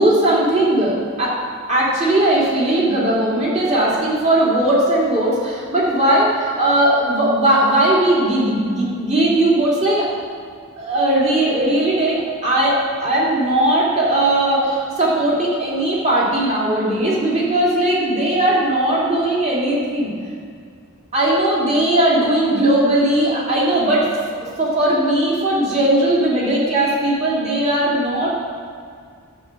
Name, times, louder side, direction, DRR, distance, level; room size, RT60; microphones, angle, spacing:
voice 1, 0.0-1.4 1.7-10.0 10.8-20.1 21.1-24.1 24.4-28.3, right 1 dB, 30° right, -5 dB, 3.0 m, -18 dB
11.5 x 7.9 x 6.1 m, 2.1 s
head